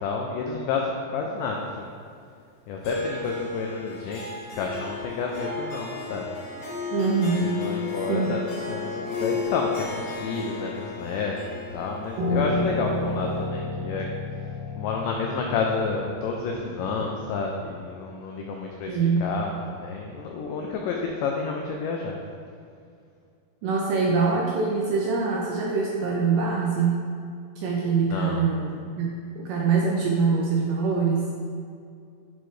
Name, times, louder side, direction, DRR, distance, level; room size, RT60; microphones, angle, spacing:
voice 1, 0.0-1.9 2.7-6.3 7.4-8.4 8.7-14.1 14.8-22.2 28.1-28.4, left 4 dB, 90° left, 0 dB, 1.9 m, -30 dB
Harp, 2.8-13.4, left 5 dB, 65° left, 2.0 m, -34 dB
voice 2, 6.9-7.6 8.1-8.3 18.9-19.3 23.6-27.0 27.6-31.3, right 4 dB, 80° right, -2 dB, 1.9 m, -24 dB
Piano, 12.2-17.5, left 2 dB, 65° right, 2.5 m, -31 dB
8.3 x 4.5 x 3.1 m, 2.3 s
omnidirectional pair, 4.3 m